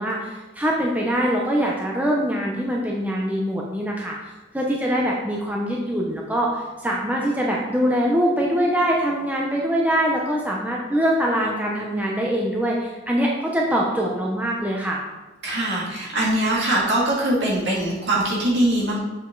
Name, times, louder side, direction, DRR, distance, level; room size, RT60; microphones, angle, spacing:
voice 1, 0.0-4.2 4.5-15.0, equal, 10° right, -2 dB, 0.7 m, -23 dB
voice 2, 15.4-19.0, right 1 dB, 60° right, -5 dB, 2.2 m, -22 dB
6.8 x 5.4 x 3.8 m, 1.1 s
head